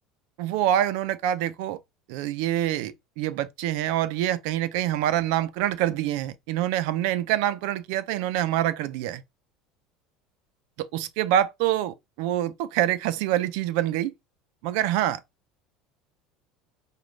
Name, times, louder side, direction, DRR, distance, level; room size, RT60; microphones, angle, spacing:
voice 1, 0.4-1.8 2.1-9.2 10.8-14.1 14.6-15.2, right 12 dB, 75° right, 0.5 m, -26 dB
5.0 x 2.3 x 3.2 m
cardioid pair, 145°, 0 cm